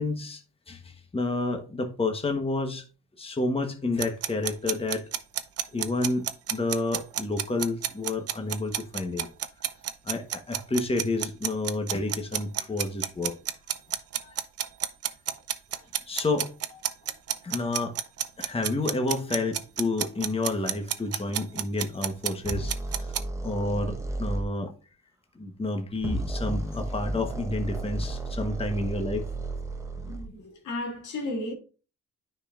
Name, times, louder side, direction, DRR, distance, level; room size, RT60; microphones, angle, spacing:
voice 1, 0.0-2.8 3.2-5.0 5.7-9.3 10.0-13.3 14.2-14.3 16.1-16.8 17.4-17.9 18.4-24.7 25.3-29.3, left 2 dB, 20° left, 1.2 m, -30 dB
sound 1, 4.0-23.2, right 10 dB, 55° right, 0.7 m, -30 dB
sound 2, 22.4-24.5 25.9-30.3, right 2 dB, 10° right, 1.1 m, -33 dB
voice 2, 30.1-31.5, left 2 dB, 80° left, 1.9 m, -34 dB
9.6 x 5.3 x 2.5 m
cardioid pair, 90°, 30 cm